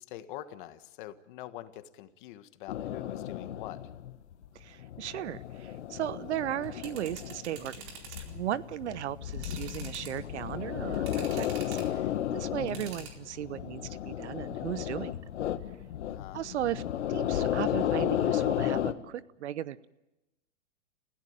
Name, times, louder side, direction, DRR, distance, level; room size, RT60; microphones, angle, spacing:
voice 1, 0.0-3.9 16.0-16.5, left 13 dB, 40° left, 10 dB, 1.6 m, -45 dB
sound 1, 2.7-18.9, left 11 dB, 65° left, 1.7 m, -33 dB
voice 2, 4.5-8.0 8.3-12.0 12.3-15.2 16.3-16.8 17.1-19.9, right 11 dB, 65° right, 17 dB, 1.0 m, -36 dB
sound 2, 6.5-8.3 8.7-8.9 9.3-10.4 10.9-12.0 12.7-13.1, right 5 dB, 40° right, 4.3 m, -47 dB
29.5 x 16.0 x 9.0 m, 0.97 s
hypercardioid pair, 145°, 37 cm